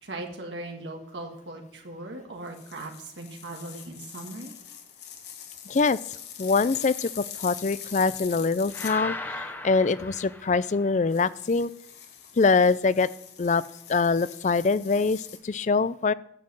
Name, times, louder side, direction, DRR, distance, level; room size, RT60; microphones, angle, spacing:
voice 1, 0.0-4.5, right 2 dB, 85° right, 1 dB, 1.8 m, -39 dB
sound 1, 2.5-9.0 11.1-15.4, left 9 dB, 65° left, 1.5 m, -43 dB
voice 2, 5.7-11.7 12.4-13.1 13.4-13.6 13.9-16.1, left 4 dB, 40° left, 18 dB, 0.4 m, -24 dB
sound 2, 8.7-11.0, left 2 dB, 10° left, 0.8 m, -37 dB
9.8 x 7.5 x 7.6 m, 0.77 s
head